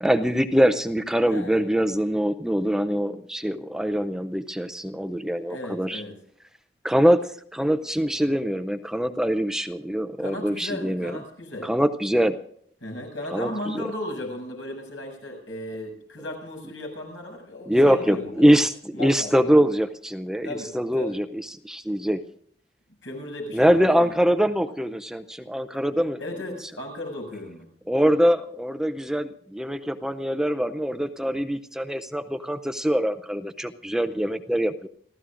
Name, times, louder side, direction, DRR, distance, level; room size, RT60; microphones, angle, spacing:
voice 1, 0.0-6.0 6.8-11.2 11.6-12.4 13.3-13.5 13.8-13.9 17.7-20.5 20.7-21.3 21.6-22.2 23.5-26.2 27.9-34.9, equal, 5° right, 9 dB, 0.5 m, -23 dB
voice 2, 1.2-1.6 5.5-6.1 10.2-11.7 12.8-18.5 18.9-19.6 20.4-21.2 23.0-24.1 26.2-27.7, left 1 dB, 80° left, 1 dB, 7.2 m, -36 dB
29.0 x 15.5 x 2.5 m, 0.64 s
head